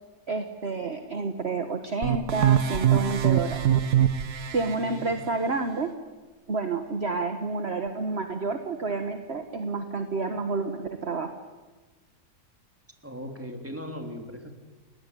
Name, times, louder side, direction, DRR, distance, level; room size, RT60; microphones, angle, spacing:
voice 1, 0.3-3.6 4.5-5.9 6.5-11.3, right 3 dB, 45° right, 6 dB, 1.7 m, -29 dB
sound 1, 2.0-4.7, right 10 dB, 75° right, 1.7 m, -23 dB
voice 2, 4.6-5.1 13.0-14.5, equal, 10° right, 4 dB, 3.6 m, -38 dB
29.5 x 20.5 x 10.0 m, 1.3 s
omnidirectional pair, 1.7 m